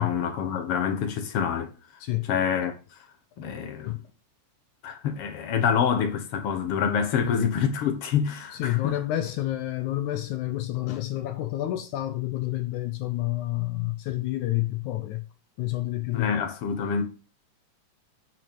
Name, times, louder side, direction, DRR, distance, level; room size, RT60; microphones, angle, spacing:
voice 1, 0.0-1.7 2.3-3.0 3.4-4.0 4.8-9.0 16.1-17.0, left 7 dB, 55° left, 1.7 m, -26 dB
voice 2, 8.6-15.2 15.6-16.4, left 15 dB, 75° left, 1.9 m, -29 dB
9.2 x 5.8 x 5.4 m
omnidirectional pair, 4.0 m